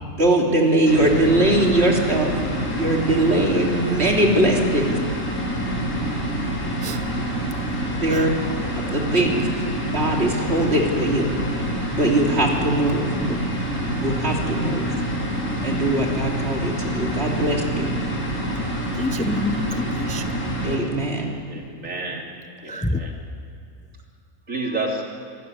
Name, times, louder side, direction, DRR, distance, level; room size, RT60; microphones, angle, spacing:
voice 1, 0.2-2.3 2.8-5.0 8.0-8.3 8.9-9.5 9.9-11.4 12.0-13.1 14.0-14.9 15.6-18.0 20.6-21.3, right 1 dB, 45° right, 0 dB, 3.4 m, -21 dB
sound 1, 0.8-20.8, right 1 dB, 85° left, 4.8 m, -27 dB
voice 2, 18.9-20.5 22.7-23.0, left 1 dB, 10° left, 8 dB, 0.5 m, -28 dB
voice 3, 21.5-22.3 22.6-23.2 24.5-25.0, right 2 dB, 65° right, 0 dB, 3.6 m, -29 dB
26.0 x 14.0 x 9.9 m, 2.3 s
omnidirectional pair, 1.5 m